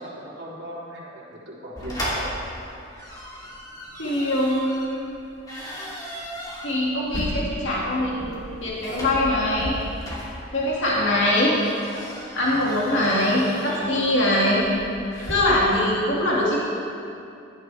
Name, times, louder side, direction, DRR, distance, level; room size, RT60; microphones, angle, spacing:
voice 1, 0.0-2.4 12.4-12.8, equal, 60° right, -7 dB, 3.4 m, -38 dB
sound 1, 1.8-15.3, equal, 20° left, 2.8 m, -35 dB
voice 2, 4.0-5.1 6.6-9.7 10.5-11.6 12.3-14.7 15.3-16.6, left 1 dB, 70° left, -5 dB, 2.3 m, -22 dB
17.0 x 11.5 x 3.4 m, 2.6 s
head